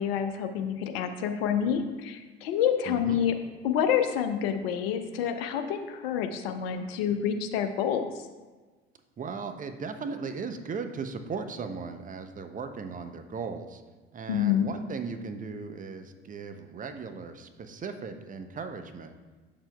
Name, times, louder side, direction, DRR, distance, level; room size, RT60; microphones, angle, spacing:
voice 1, 0.0-3.3 3.6-8.1 14.3-14.7, left 8 dB, 70° left, 7 dB, 0.7 m, -28 dB
voice 2, 2.9-3.2 9.2-13.8 14.1-19.1, right 5 dB, 25° right, 7 dB, 0.6 m, -37 dB
7.1 x 6.7 x 2.3 m, 1.3 s
hypercardioid pair, 65°, 31 cm